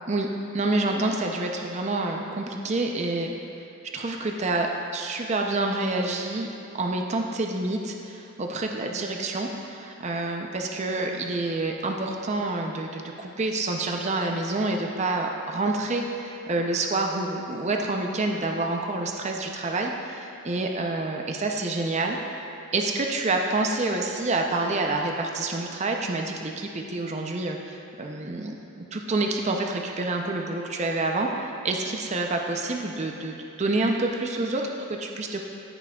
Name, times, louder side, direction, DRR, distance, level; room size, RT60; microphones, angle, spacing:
voice 1, 0.5-3.4 3.9-6.5 6.8-22.2 22.7-35.4, right 2 dB, 30° right, 2 dB, 0.5 m, -28 dB
14.0 x 6.0 x 2.3 m, 2.7 s
head